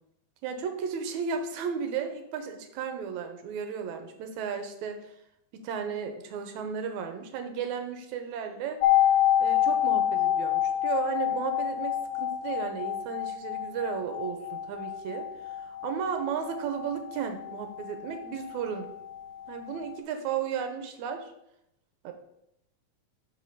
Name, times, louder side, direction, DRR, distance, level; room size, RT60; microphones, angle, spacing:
voice 1, 0.4-5.1 5.5-8.8 9.4-15.3 15.6-18.9 19.5-21.3 22.0-22.1, right 7 dB, 70° right, 6 dB, 2.0 m, -34 dB
sound 1, 8.8-18.6 18.8-18.9, left 11 dB, 75° left, 1.8 m, -27 dB
6.7 x 5.4 x 5.3 m, 0.78 s
omnidirectional pair, 3.9 m